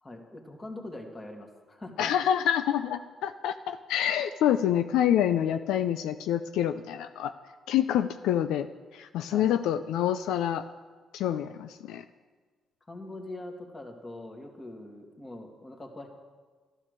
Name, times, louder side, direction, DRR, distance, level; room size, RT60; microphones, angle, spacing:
voice 1, 0.0-2.1 9.3-9.6 12.9-16.1, left 2 dB, 25° left, 2 dB, 2.4 m, -42 dB
voice 2, 2.0-7.3 7.7-8.7 8.9-10.6 11.1-12.0, left 10 dB, 90° left, 10 dB, 0.5 m, -27 dB
12.5 x 12.0 x 6.7 m, 1.5 s
cardioid pair, 90°, 0 cm